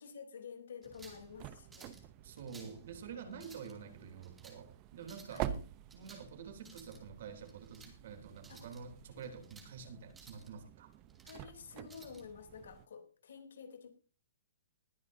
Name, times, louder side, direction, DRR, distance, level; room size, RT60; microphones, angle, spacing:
voice 1, 0.0-2.0 5.3-5.6 8.5-8.6 11.2-13.9, left 6 dB, 75° left, 6 dB, 3.2 m, -50 dB
sound 1, 0.8-1.3 1.7-2.0 2.4-2.8 3.3-3.7 4.2-4.6 5.0-5.4 5.9-6.3 6.6-7.0 7.5-7.9 8.4-8.8 9.2-9.7 10.1-10.5 10.9-11.4 11.9-12.2, right 3 dB, 5° right, 2.6 m, -57 dB
sound 2, 0.8-12.9, right 11 dB, 25° right, 0.7 m, -48 dB
voice 2, 2.2-5.5 5.9-10.9, right 6 dB, 55° right, 5 dB, 3.2 m, -48 dB
21.0 x 10.0 x 2.7 m, 0.36 s
hypercardioid pair, 165°, 0 cm